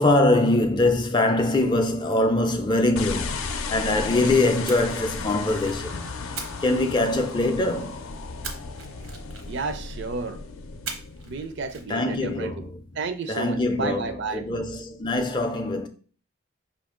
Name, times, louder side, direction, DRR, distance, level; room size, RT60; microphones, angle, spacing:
voice 1, 0.0-8.0 11.9-13.0 13.3-15.9, left 2 dB, 20° left, 0.4 m, -23 dB
sound 1, 3.0-12.3, left 4 dB, 80° left, 0.5 m, -35 dB
Splash splatter, 4.7-5.8 6.4-7.5 8.4-9.7 10.9-11.3 11.6-11.8, right 5 dB, 80° right, 0.8 m, -39 dB
voice 2, 9.5-10.4 11.3-12.5 13.0-14.7, right 4 dB, 55° right, 0.5 m, -32 dB
5.1 x 2.6 x 3.6 m
head